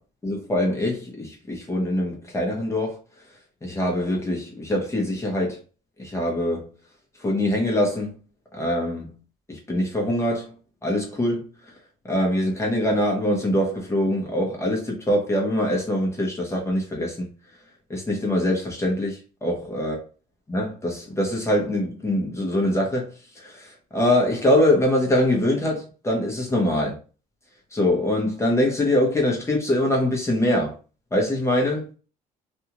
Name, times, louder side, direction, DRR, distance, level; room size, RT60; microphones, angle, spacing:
voice 1, 0.2-3.0 3.6-5.6 6.0-6.7 7.2-8.1 8.5-9.2 9.5-10.5 10.8-11.5 12.0-17.3 17.9-20.0 20.5-23.1 23.4-27.0 27.7-30.7 31.1-31.9, left 1 dB, 15° left, 0.9 m, -23 dB
2.6 x 2.4 x 2.9 m
cardioid pair, 110°, 17 cm